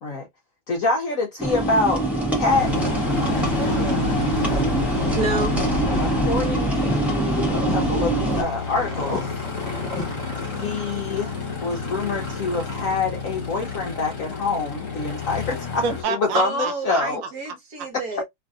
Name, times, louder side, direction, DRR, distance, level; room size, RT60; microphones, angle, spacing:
voice 1, 0.7-2.1 2.3-2.7 5.3-5.4 6.0-9.3 10.6-17.2, left 3 dB, 70° left, 0.8 m, -26 dB
sound 1, 1.4-8.4, right 2 dB, ahead, 0.3 m, -24 dB
sound 2, 2.2-10.8, left 1 dB, 20° left, 1.4 m, -35 dB
Aircraft, 2.5-16.0, left 4 dB, 50° left, 1.2 m, -30 dB
voice 2, 3.0-4.0 15.8-17.0, right 5 dB, 75° right, 1.4 m, -30 dB
voice 3, 5.1-5.6 16.3-18.2, right 2 dB, 55° right, 1.3 m, -28 dB
3.2 x 2.6 x 2.2 m
omnidirectional pair, 2.1 m